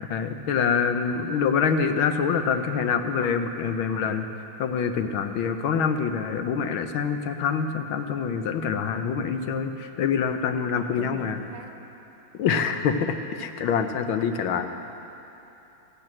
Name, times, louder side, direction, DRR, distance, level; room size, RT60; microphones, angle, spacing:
voice 1, 0.1-4.3 4.6-11.4 12.4-14.7, left 6 dB, 80° left, 8 dB, 1.7 m, -25 dB
voice 2, 10.8-11.8, right 2 dB, 30° right, 2 dB, 0.7 m, -44 dB
15.0 x 12.0 x 7.7 m, 2.9 s
omnidirectional pair, 2.2 m